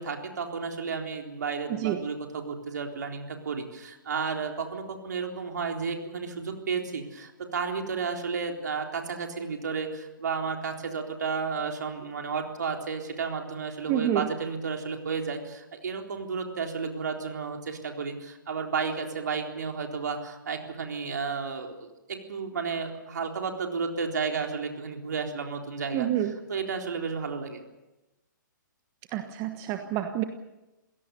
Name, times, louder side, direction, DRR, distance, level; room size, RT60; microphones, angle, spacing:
voice 1, 0.0-26.1 26.5-27.6, right 5 dB, 60° right, 3 dB, 3.9 m, -32 dB
voice 2, 13.9-14.3 25.9-26.3 29.1-30.2, right 12 dB, 25° right, 7 dB, 1.3 m, -28 dB
28.5 x 17.5 x 6.9 m, 1.0 s
figure-of-eight pair, 125°, 11 cm